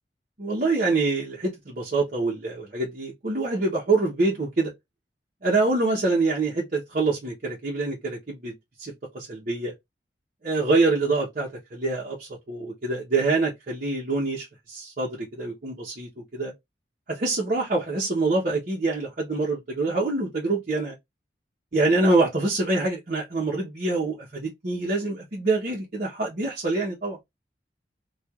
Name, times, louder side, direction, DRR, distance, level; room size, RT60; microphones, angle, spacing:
voice 1, 0.4-4.7 5.4-9.7 10.4-16.5 17.1-21.0 21.7-27.2, right 3 dB, 50° right, 0.9 m, -25 dB
4.4 x 2.4 x 2.4 m
head